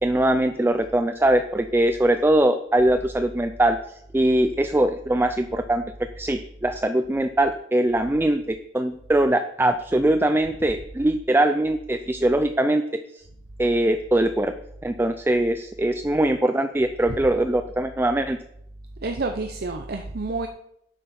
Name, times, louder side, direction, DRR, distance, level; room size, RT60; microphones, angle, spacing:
voice 1, 0.0-13.2 13.6-14.5 14.8-18.4, right 1 dB, 15° right, 9 dB, 0.4 m, -22 dB
voice 2, 19.0-20.5, right 3 dB, 60° right, 5 dB, 0.7 m, -29 dB
11.0 x 8.3 x 4.3 m, 0.75 s
head